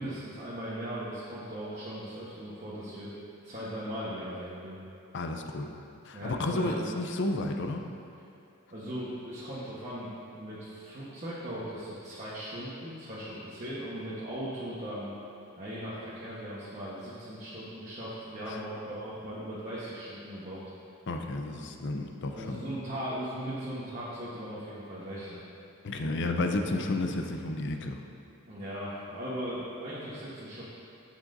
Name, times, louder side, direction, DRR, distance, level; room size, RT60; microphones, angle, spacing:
voice 1, 0.0-3.1 3.4-4.8 6.1-6.9 8.7-15.1 15.6-20.6 22.3-25.4 26.7-26.8 28.5-30.6, equal, 35° right, -10 dB, 1.2 m, -38 dB
voice 2, 5.1-5.7 6.1-7.8 18.5-18.6 21.1-22.6 25.8-28.0, left 2 dB, 55° left, 4 dB, 0.6 m, -32 dB
11.0 x 7.4 x 2.7 m, 2.6 s
head